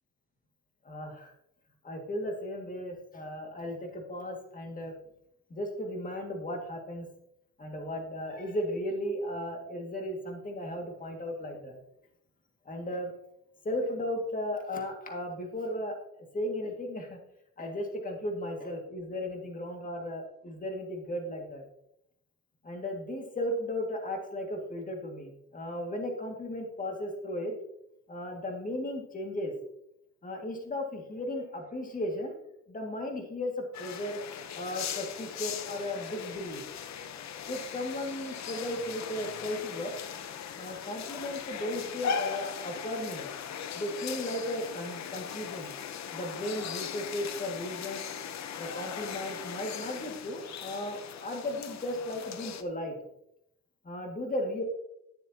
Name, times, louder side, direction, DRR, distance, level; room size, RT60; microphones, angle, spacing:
voice 1, 0.8-1.3 1.8-4.9 5.5-7.1 7.6-11.8 12.7-13.1 13.6-17.2 17.6-21.6 22.6-27.5 28.1-29.5 30.2-32.4 32.7-34.2 34.6-36.6 37.5-39.9 40.5-43.3 43.7-45.7 46.1-48.0 48.6-53.0 53.8-54.6, left 1 dB, 25° left, 2 dB, 2.0 m, -35 dB
sound 1, 33.7-52.6, left 7 dB, 65° left, 0.9 m, -39 dB
13.0 x 7.6 x 2.9 m, 0.79 s
cardioid pair, 90°, 30 cm